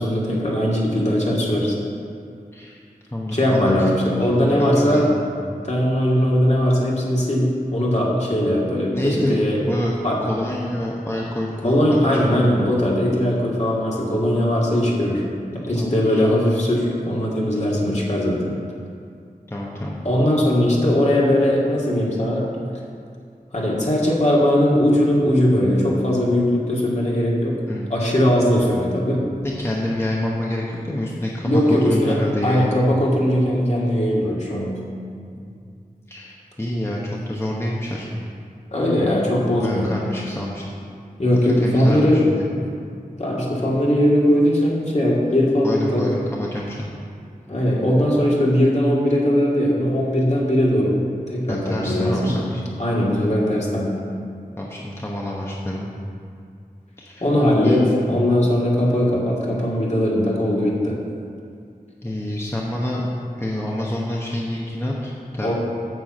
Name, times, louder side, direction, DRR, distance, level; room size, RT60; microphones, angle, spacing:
voice 1, 0.0-1.7 3.3-5.1 5.6-9.6 10.0-10.2 11.6-15.2 15.5-18.5 20.0-22.5 23.5-27.6 27.9-29.2 31.4-32.2 32.4-34.8 38.7-39.9 41.2-42.2 43.2-46.0 47.5-52.3 52.8-53.9 57.2-61.0 65.4-65.5, equal, 50° left, -5 dB, 2.2 m, -19 dB
voice 2, 3.1-3.9 4.3-5.3 8.9-9.4 9.6-9.9 10.2-12.2 15.7-16.2 17.5-17.6 19.5-20.0 27.7-27.9 29.4-32.8 35.4-35.6 36.1-38.1 39.4-40.6 41.3-42.4 45.6-46.8 51.5-52.6 54.6-55.9 57.0-57.3 57.6-58.1 62.0-63.0 63.4-65.5, left 1 dB, 15° left, -4 dB, 1.0 m, -27 dB
9.2 x 4.6 x 7.7 m, 2.3 s
wide cardioid pair, 60°, 15 cm